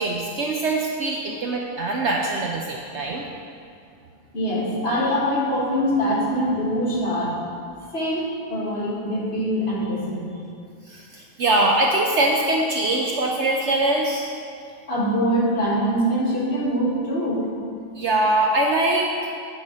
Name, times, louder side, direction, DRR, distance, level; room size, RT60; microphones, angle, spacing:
voice 1, 0.0-3.3 10.9-14.3 17.9-19.1, right 2 dB, 65° right, 0 dB, 0.8 m, -22 dB
voice 2, 4.3-7.4 7.9-10.3 14.9-17.5, equal, 45° left, -6 dB, 1.8 m, -23 dB
8.2 x 4.1 x 6.3 m, 2.4 s
omnidirectional pair, 1.5 m